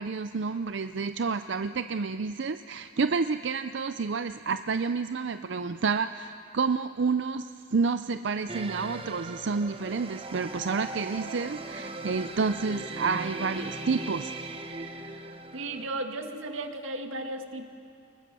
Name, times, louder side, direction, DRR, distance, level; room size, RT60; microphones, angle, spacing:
voice 1, 0.0-14.3, right 4 dB, 60° right, 10 dB, 0.5 m, -29 dB
sound 1, 8.5-15.9, right 2 dB, 30° right, 1.2 m, -39 dB
voice 2, 15.5-17.7, right 2 dB, 85° right, 5 dB, 2.0 m, -35 dB
29.0 x 20.5 x 7.7 m, 2.4 s
head